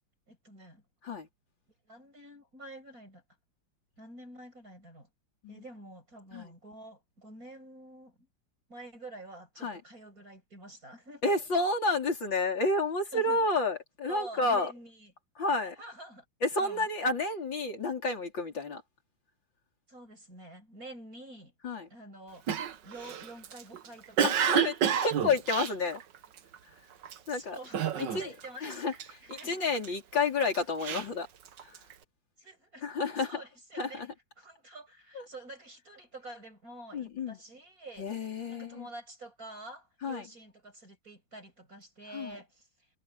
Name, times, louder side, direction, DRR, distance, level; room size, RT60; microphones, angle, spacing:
voice 1, 0.3-0.8 1.8-3.2 4.0-5.1 5.5-8.3 8.7-11.4 13.1-13.4 14.1-15.1 15.6-16.2 16.6-16.9 19.9-21.5 21.9-22.5 22.8-24.3 27.3-29.6 32.4-34.1 34.4-42.9, right 2 dB, 45° right, 7.7 m, -48 dB
voice 2, 11.2-14.7 15.4-15.7 16.4-18.8 21.6-21.9 24.2-24.7 25.0-26.0 27.3-27.6 28.0-28.3 28.6-31.3 31.6-31.7 32.8-33.4 33.8-34.1 35.1-35.2 36.9-37.4 38.0-38.9 40.0-40.2 42.1-42.4, left 3 dB, 65° left, 5.1 m, -30 dB
Cough, 22.5-26.6 27.0-27.3 27.7-28.5 28.7-29.9 30.4-31.9, right 8 dB, 65° right, 1.7 m, -30 dB
omnidirectional pair, 2.2 m